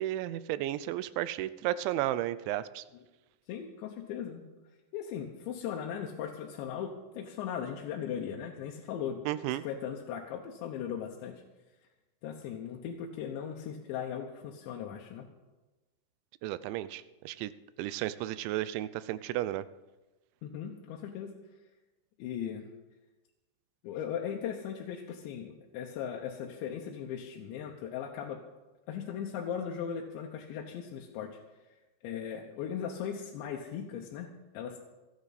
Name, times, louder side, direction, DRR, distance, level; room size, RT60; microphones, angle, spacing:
voice 1, 0.0-2.8 9.3-9.6 16.4-17.5 17.8-19.6, right 14 dB, 85° right, 15 dB, 3.0 m, -33 dB
voice 2, 3.5-4.4 4.9-9.3 9.6-11.4 12.2-15.3 20.4-21.3 22.2-22.6 23.8-28.4 28.9-31.4 32.0-34.3 34.5-34.8, left 8 dB, 80° left, 0 dB, 3.3 m, -38 dB
27.0 x 9.6 x 4.1 m, 1.1 s
omnidirectional pair, 5.3 m